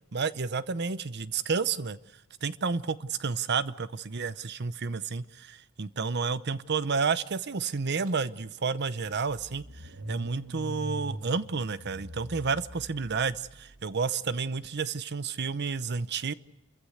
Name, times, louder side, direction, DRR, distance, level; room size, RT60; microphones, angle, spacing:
voice 1, 0.1-2.0 2.4-16.3, right 5 dB, 50° right, 16 dB, 0.7 m, -31 dB
Car / Engine starting, 8.1-8.2 8.5-13.7, equal, 85° right, 2.7 m, -42 dB
28.5 x 15.0 x 7.9 m, 1.0 s
head